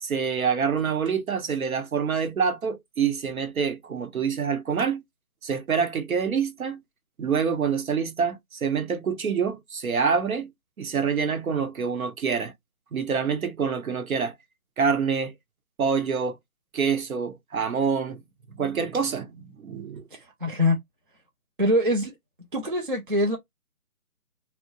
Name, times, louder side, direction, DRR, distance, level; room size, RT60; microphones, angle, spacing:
voice 1, 0.0-5.0 5.4-6.8 7.2-10.5 10.8-12.5 12.9-14.3 14.8-15.3 15.8-16.4 16.7-18.2 18.5-20.1, right 6 dB, 70° right, 0.8 m, -26 dB
voice 2, 20.1-20.8 21.6-22.1 22.5-23.4, left 1 dB, 40° right, 0.4 m, -24 dB
2.6 x 2.0 x 2.7 m
figure-of-eight pair, 165°, 44 cm